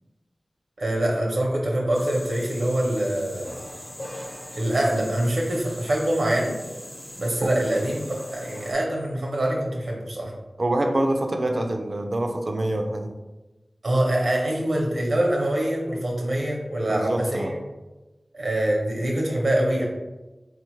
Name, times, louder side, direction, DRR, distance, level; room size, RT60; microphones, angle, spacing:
voice 1, 0.8-3.6 4.5-6.5 7.2-10.3 13.8-17.6 18.3-19.8, right 1 dB, 85° right, -1 dB, 0.8 m, -24 dB
sound 1, 1.9-8.7, left 1 dB, 60° left, 0.9 m, -40 dB
voice 2, 10.6-13.1 16.9-17.5, right 1 dB, 55° right, 5 dB, 0.4 m, -25 dB
3.8 x 2.4 x 3.0 m, 1.1 s
wide cardioid pair, 45°, 0 cm